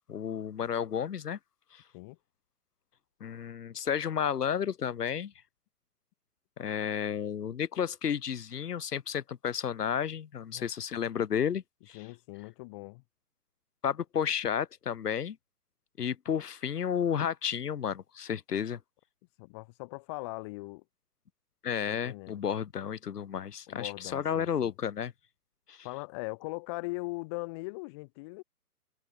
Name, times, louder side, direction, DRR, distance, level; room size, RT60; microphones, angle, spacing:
voice 1, 0.1-1.4 1.7-1.8 3.2-5.3 6.6-12.0 13.8-15.4 16.0-18.8 21.6-25.1 25.7-25.9, left 8 dB, 80° left, 1.0 m, -32 dB
voice 2, 11.9-13.0 19.4-20.8 21.9-22.4 23.7-24.7 25.8-28.4, left 27 dB, 20° left, 1.1 m, -40 dB
hypercardioid pair, 150°, 46 cm